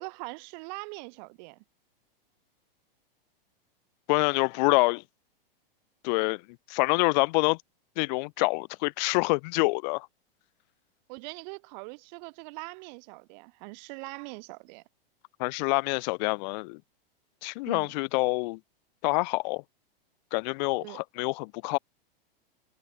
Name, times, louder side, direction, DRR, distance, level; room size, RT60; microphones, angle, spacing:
voice 1, 0.0-1.6 11.1-14.8 17.7-17.9 20.8-21.0, right 31 dB, 50° right, 6.6 m, -42 dB
voice 2, 4.1-5.0 6.0-6.4 6.7-7.6 8.0-10.1 15.4-16.8 17.4-18.6 19.0-19.6 20.3-21.8, left 28 dB, 50° left, 1.9 m, -26 dB
hypercardioid pair, 130°, 29 cm